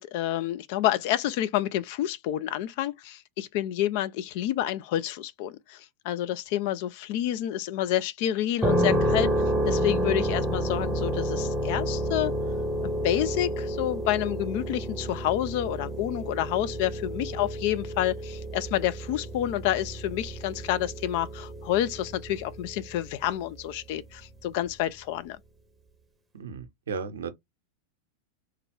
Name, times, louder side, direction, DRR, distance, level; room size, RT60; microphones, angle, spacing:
voice 1, 0.0-9.3 9.7-12.4 12.8-25.4, left 12 dB, 45° left, 0.4 m, -29 dB
sound 1, 8.6-23.3, equal, 10° right, 0.8 m, -30 dB
voice 2, 26.3-27.3, right 5 dB, 65° right, 0.6 m, -35 dB
3.2 x 2.3 x 3.5 m
figure-of-eight pair, 90°, 0 cm